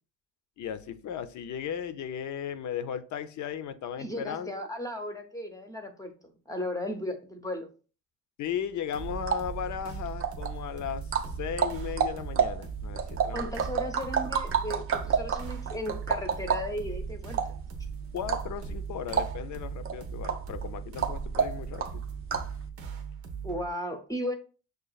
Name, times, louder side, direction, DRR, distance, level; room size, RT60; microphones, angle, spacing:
voice 1, 0.6-4.6 8.4-11.0 11.4-13.5 18.1-22.0, left 8 dB, 55° left, 12 dB, 0.5 m, -36 dB
voice 2, 4.0-7.7 13.3-17.6 23.4-24.3, left 1 dB, 10° left, 5 dB, 0.6 m, -36 dB
sound 1, 8.9-23.7, right 6 dB, 85° right, 0.8 m, -39 dB
sound 2, 9.0-22.6, right 6 dB, 40° right, 0.4 m, -31 dB
6.3 x 2.4 x 2.3 m, 0.38 s
cardioid pair, 100°, 35 cm